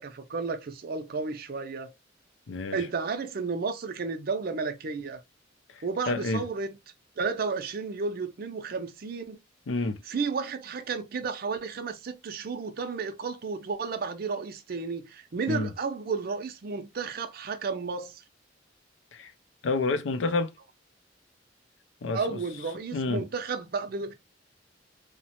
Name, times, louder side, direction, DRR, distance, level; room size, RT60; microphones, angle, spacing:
voice 1, 0.0-1.9 2.7-5.2 5.8-6.7 7.2-9.4 10.1-18.2 22.1-24.1, right 4 dB, 55° right, 0.5 m, -32 dB
voice 2, 2.5-2.9 5.7-6.4 9.7-10.0 15.5-15.7 19.1-19.3 19.6-20.5 22.0-22.4 22.9-23.2, left 3 dB, 80° left, 0.5 m, -29 dB
2.8 x 2.1 x 2.8 m
head